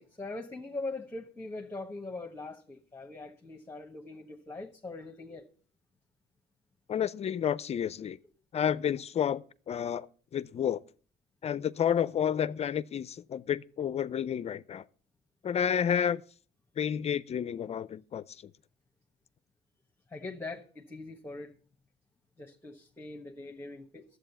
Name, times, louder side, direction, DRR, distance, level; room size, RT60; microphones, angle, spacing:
voice 1, 0.0-5.5 20.1-21.5 22.4-24.0, left 2 dB, 15° left, 1.2 m, -41 dB
voice 2, 6.9-8.2 8.5-10.1 10.3-10.8 11.4-14.8 15.4-16.2 16.8-18.5, left 8 dB, 40° left, 0.5 m, -30 dB
11.5 x 8.1 x 6.9 m
cardioid pair, 110°, 17 cm